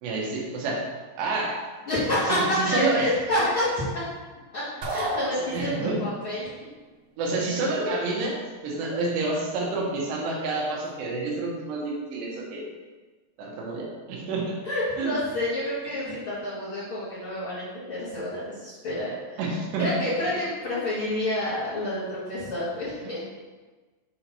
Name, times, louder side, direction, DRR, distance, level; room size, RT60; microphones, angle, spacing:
voice 1, 0.0-0.9 1.2-1.6 2.3-3.1 5.5-6.0 7.2-12.7 13.4-14.5 15.0-15.1 16.0-16.1 19.4-19.9 20.2-20.3, right 3 dB, 85° right, -2 dB, 3.4 m, -28 dB
voice 2, 1.9-4.0 4.5-4.6 4.9-6.5 14.6-19.4 19.8-23.2, left 1 dB, 45° left, -12 dB, 1.9 m, -28 dB
sound 1, 4.8-6.1, right 1 dB, 65° right, 2.8 m, -32 dB
7.8 x 3.0 x 5.4 m, 1.3 s
omnidirectional pair, 4.8 m